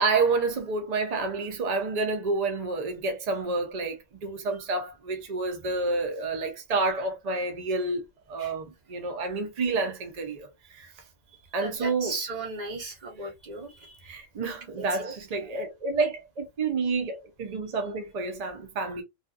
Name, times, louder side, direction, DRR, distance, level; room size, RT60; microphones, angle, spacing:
voice 1, 0.0-10.9 11.5-12.1 13.2-13.3 14.0-19.0, right 3 dB, 65° right, 0.3 m, -29 dB
voice 2, 11.6-14.0 15.0-15.1, right 3 dB, 35° right, 0.9 m, -36 dB
2.7 x 2.4 x 2.3 m
omnidirectional pair, 1.4 m